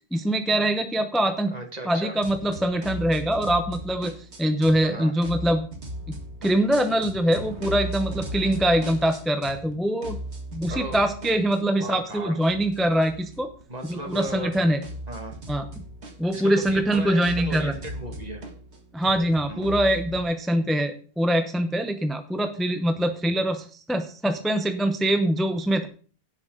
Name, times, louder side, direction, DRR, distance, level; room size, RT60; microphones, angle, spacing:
voice 1, 0.1-1.5 1.9-4.1 4.4-5.6 6.4-10.2 10.5-13.5 13.8-14.8 15.5-15.7 16.2-17.8 18.9-25.9, right 1 dB, ahead, 7 dB, 0.8 m, -23 dB
voice 2, 1.5-2.2 4.8-5.1 10.7-11.0 11.8-12.4 13.7-14.5 15.1-15.4 16.3-18.4 19.5-19.8, right 2 dB, 40° right, 4 dB, 2.1 m, -36 dB
sound 1, 2.2-4.9 5.2-9.7 10.0-20.2, right 1 dB, 90° right, 2.2 m, -38 dB
16.5 x 7.9 x 3.9 m, 0.41 s
omnidirectional pair, 1.1 m